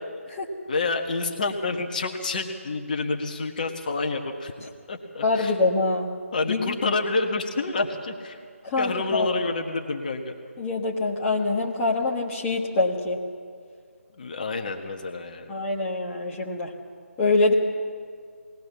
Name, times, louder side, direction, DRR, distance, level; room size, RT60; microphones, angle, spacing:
voice 1, 0.7-4.5 4.9-5.5 6.3-8.4 8.8-10.4 14.1-15.5, left 3 dB, 35° left, 4 dB, 1.4 m, -28 dB
voice 2, 5.2-6.1 6.5-6.9 8.6-9.3 10.6-13.2 15.5-16.7 17.2-17.5, left 3 dB, 15° left, -4 dB, 1.3 m, -24 dB
20.0 x 18.5 x 7.2 m, 2.1 s
figure-of-eight pair, 155°, 8 cm